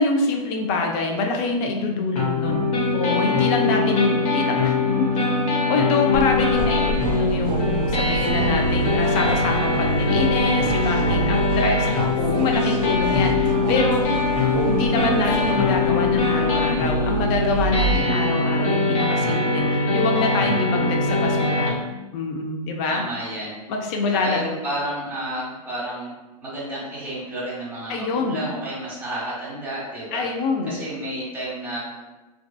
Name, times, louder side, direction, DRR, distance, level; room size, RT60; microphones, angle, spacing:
voice 1, 0.0-2.7 2.9-5.1 5.7-14.1 14.6-21.7 22.1-23.0 23.7-24.4 27.9-28.4 30.1-30.7, left 3 dB, 35° left, 2 dB, 0.4 m, -25 dB
sound 1, 2.2-21.7, left 2 dB, 55° left, 0.8 m, -22 dB
sound 2, 6.1-18.0, right 2 dB, 30° right, 0.7 m, -31 dB
sound 3, 6.6-15.6, right 4 dB, 75° right, 0.5 m, -32 dB
voice 2, 22.9-23.5 24.2-26.1 26.4-30.2 30.6-31.9, right 1 dB, 10° right, -8 dB, 1.0 m, -31 dB
2.5 x 2.3 x 2.3 m, 1.1 s
hypercardioid pair, 125°, 21 cm